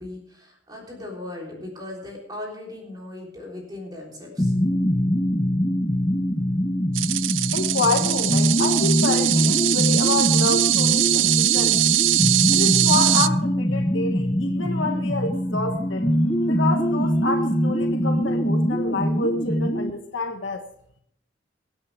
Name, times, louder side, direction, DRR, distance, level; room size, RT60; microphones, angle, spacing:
voice 1, 0.0-4.5, left 1 dB, 20° right, -2 dB, 3.6 m, -38 dB
sound 1, 4.4-19.9, equal, 15° left, 0.7 m, -23 dB
sound 2, 6.9-13.3, right 16 dB, 90° right, 0.4 m, -21 dB
voice 2, 7.5-12.0 12.5-16.1 16.4-20.7, left 3 dB, 85° left, 4 dB, 1.3 m, -28 dB
23.0 x 8.8 x 3.5 m, 0.67 s
head